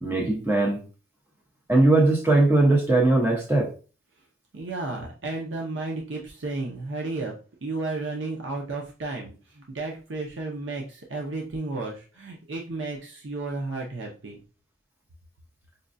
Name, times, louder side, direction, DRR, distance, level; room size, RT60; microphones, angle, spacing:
voice 1, 0.0-0.8 1.7-3.7, right 2 dB, 10° right, -1 dB, 0.8 m, -20 dB
voice 2, 4.5-7.3 7.6-14.4, right 3 dB, 85° right, -1 dB, 0.6 m, -33 dB
5.1 x 2.3 x 2.5 m, 0.36 s
head